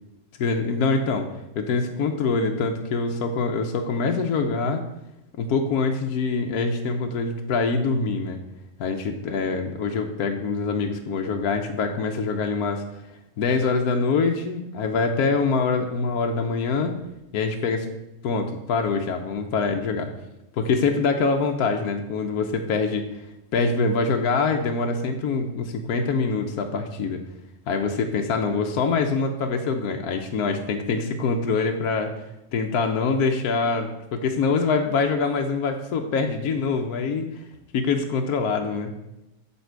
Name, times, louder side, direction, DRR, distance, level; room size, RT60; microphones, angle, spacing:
voice 1, 0.4-1.3 1.5-4.8 5.4-8.4 8.8-12.8 13.4-16.9 17.3-17.9 18.2-20.1 20.5-23.0 23.5-27.2 27.7-32.1 32.5-37.4 37.7-38.9, left 4 dB, 65° left, 3 dB, 1.1 m, -24 dB
7.5 x 6.9 x 4.5 m, 0.91 s
omnidirectional pair, 1.9 m